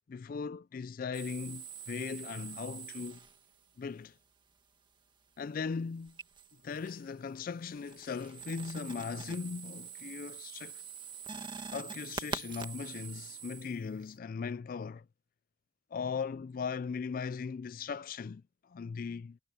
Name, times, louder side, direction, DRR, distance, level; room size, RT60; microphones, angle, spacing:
voice 1, 0.1-3.2 3.8-4.1 5.4-6.2 6.6-10.8 11.7-15.1 15.9-19.4, left 5 dB, 45° left, 0.3 m, -38 dB
sound 1, 1.1-3.6 6.0-7.1 7.5-14.2, right 5 dB, 25° right, 1.9 m, -45 dB
head